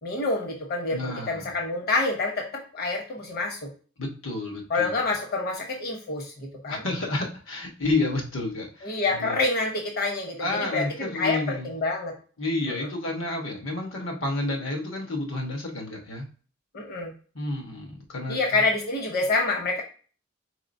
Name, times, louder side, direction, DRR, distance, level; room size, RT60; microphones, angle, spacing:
voice 1, 0.0-3.7 4.7-6.8 8.8-12.1 12.7-12.9 16.7-17.1 18.3-19.8, left 3 dB, 50° left, 2 dB, 1.0 m, -27 dB
voice 2, 0.9-1.5 4.0-5.0 6.7-9.4 10.4-11.7 12.4-16.3 17.3-18.4, left 2 dB, 75° left, 2 dB, 1.3 m, -30 dB
4.8 x 4.2 x 2.6 m, 0.39 s
head